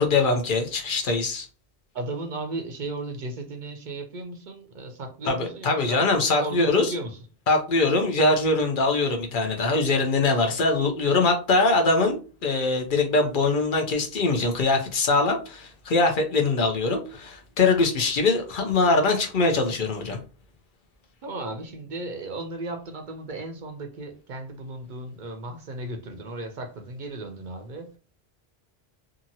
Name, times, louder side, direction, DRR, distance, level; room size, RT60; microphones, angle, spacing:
voice 1, 0.0-1.5 5.2-6.9 7.5-20.2, left 3 dB, 60° left, 3 dB, 0.7 m, -22 dB
voice 2, 1.9-6.1 6.4-7.2 21.2-27.9, right 2 dB, 60° right, 5 dB, 0.6 m, -35 dB
2.8 x 2.5 x 2.7 m, 0.34 s
omnidirectional pair, 1.0 m